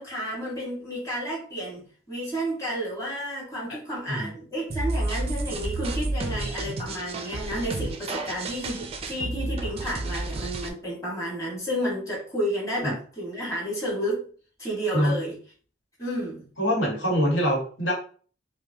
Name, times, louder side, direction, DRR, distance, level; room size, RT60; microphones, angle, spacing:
voice 1, 0.0-14.2 14.6-15.4 16.0-16.4, equal, 15° left, -5 dB, 1.5 m, -31 dB
sound 1, 4.7-10.7, right 2 dB, 30° right, 0.4 m, -31 dB
voice 2, 16.6-17.9, equal, 80° left, -2 dB, 1.3 m, -24 dB
5.2 x 2.1 x 2.7 m, 0.41 s
head